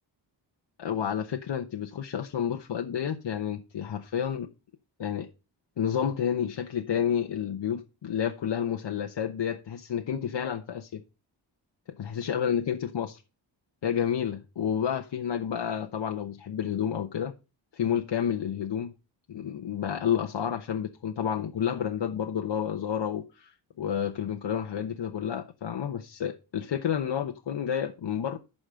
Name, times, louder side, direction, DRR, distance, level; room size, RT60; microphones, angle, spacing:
voice 1, 0.8-4.5 5.0-5.3 5.8-11.0 12.0-13.2 13.8-17.3 17.7-18.9 19.3-28.4, left 8 dB, 65° left, 1.0 m, -30 dB
11.5 x 4.2 x 6.3 m
cardioid pair, 65°, 46 cm